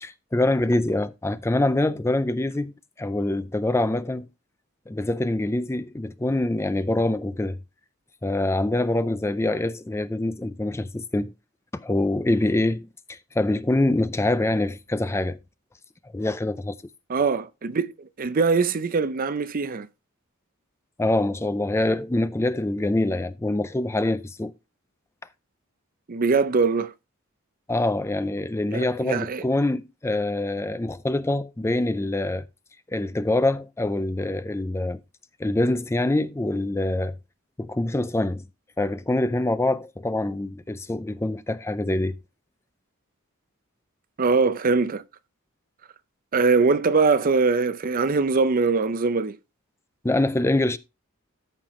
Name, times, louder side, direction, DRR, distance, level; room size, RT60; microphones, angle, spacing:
voice 1, 0.0-4.3 4.9-7.6 8.2-11.3 11.7-15.4 16.1-16.8 21.0-24.5 27.7-32.4 32.9-35.0 35.4-37.2 37.6-38.4 38.8-42.2 50.0-50.8, left 2 dB, 10° left, 0.4 m, -25 dB
voice 2, 17.1-19.9 26.1-26.9 28.7-29.4 44.2-45.0 46.3-49.4, right 4 dB, 40° right, 0.5 m, -22 dB
13.5 x 5.8 x 3.1 m
head